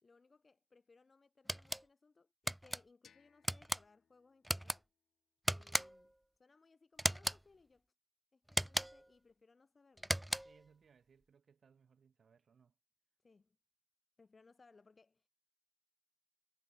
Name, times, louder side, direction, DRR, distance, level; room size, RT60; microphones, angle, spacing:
voice 1, 0.0-4.9 5.5-6.1 6.4-7.9 8.3-10.2 13.2-13.6 14.2-15.3, left 4 dB, 30° left, 3.6 m, -67 dB
sound 1, 1.5-1.8 2.5-2.8 3.4-3.8 4.4-4.8 5.5-6.1 7.0-7.4 8.5-9.1 10.0-10.6, right 1 dB, 5° right, 0.4 m, -37 dB
sound 2, 3.0-5.9, left 8 dB, 55° left, 6.7 m, -72 dB
voice 2, 10.4-12.7, right 6 dB, 45° right, 4.6 m, -68 dB
cardioid pair, 90°, 0 cm